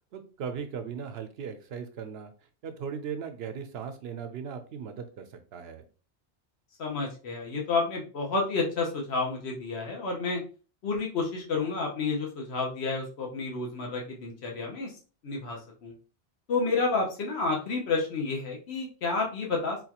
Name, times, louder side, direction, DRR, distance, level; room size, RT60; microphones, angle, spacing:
voice 1, 0.1-2.3 2.6-5.8, right 6 dB, 75° right, 8 dB, 0.9 m, -38 dB
voice 2, 6.8-10.4 10.8-14.9 15.2-15.9 16.5-19.8, left 3 dB, 90° left, 0 dB, 1.1 m, -30 dB
4.2 x 2.3 x 2.8 m, 0.36 s
omnidirectional pair, 1.1 m